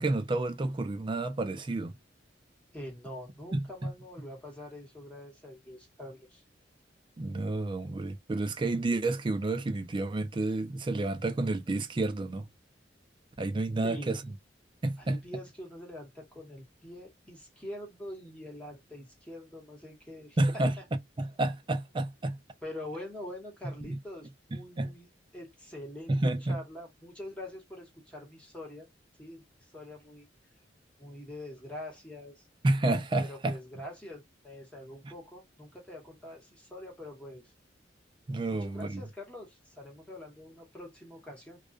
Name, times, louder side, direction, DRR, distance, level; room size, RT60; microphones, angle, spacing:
voice 1, 0.0-1.9 3.5-3.9 7.2-12.5 13.4-14.2 14.8-15.2 20.4-20.7 21.2-22.4 23.9-24.0 24.5-24.9 26.1-26.6 32.6-33.6 38.3-39.0, right 2 dB, 25° right, 0.4 m, -30 dB
voice 2, 2.7-6.4 13.8-14.1 15.0-20.6 22.6-25.1 25.3-28.9 29.2-29.4 29.7-30.3 31.0-32.5 33.2-37.5 38.5-41.6, left 1 dB, 5° left, 1.1 m, -44 dB
2.4 x 2.2 x 2.3 m
head